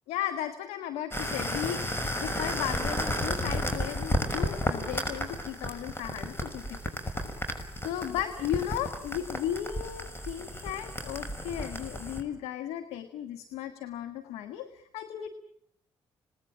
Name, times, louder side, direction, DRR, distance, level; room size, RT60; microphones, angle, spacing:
voice 1, 0.1-1.8 2.2-6.8 7.8-15.3, left 11 dB, 90° left, 9 dB, 1.4 m, -35 dB
sound 1, 1.1-12.2, left 1 dB, 20° left, 6.1 m, -33 dB
27.0 x 19.5 x 8.8 m, 0.73 s
supercardioid pair, 60°, 10 cm